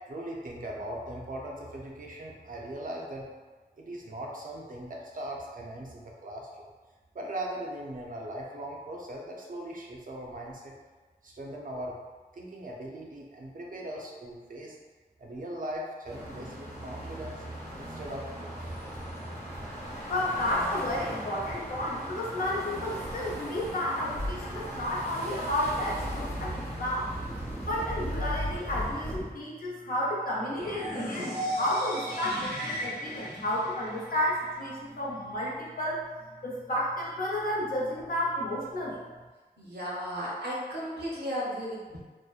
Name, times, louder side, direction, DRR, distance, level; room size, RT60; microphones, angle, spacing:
voice 1, 0.0-3.3 3.8-6.7 7.1-10.7 11.2-12.0 12.3-14.8 15.2-17.4 17.8-18.6, right 1 dB, 55° right, -2 dB, 0.5 m, -39 dB
sound 1, 15.7-15.8 16.1-17.3 17.7-18.1 18.6-19.1 19.5-21.1 21.4-21.9 23.0-23.7 24.1-25.0 25.4-26.6 27.0-29.3, equal, 10° left, 0.4 m, -39 dB
sound 2, 16.0-29.1, equal, 40° left, 1.1 m, -39 dB
voice 2, 20.1-27.1 27.7-36.0 36.4-39.1, left 1 dB, 60° left, -5 dB, 0.7 m, -31 dB
sound 3, 30.6-34.5, equal, 85° left, 1.3 m, -36 dB
voice 3, 39.6-42.0, equal, 80° right, -6 dB, 0.8 m, -34 dB
2.8 x 2.1 x 2.3 m, 1.3 s
wide cardioid pair, 70°, 17 cm